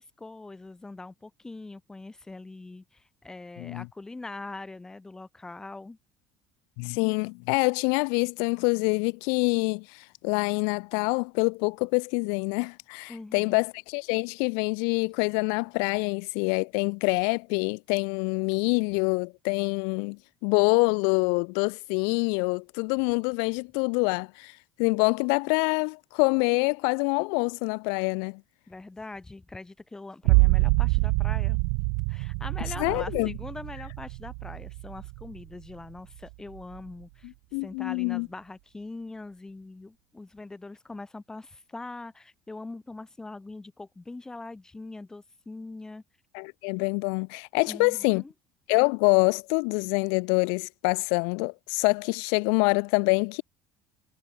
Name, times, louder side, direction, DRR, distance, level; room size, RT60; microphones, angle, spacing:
voice 1, 0.0-6.0 13.1-13.6 28.7-31.6 32.1-37.3 37.6-46.0 47.7-48.3, left 2 dB, 10° left, 4.6 m, -42 dB
voice 2, 6.8-24.5 24.8-28.4 32.8-33.3 37.2-38.3 46.3-48.2 48.7-53.4, left 40 dB or more, 80° left, 0.8 m, -26 dB
sound 1, 30.2-35.7 36.2-36.8, right 40 dB or more, 80° right, 0.4 m, -26 dB
cardioid pair, 145°, 6 cm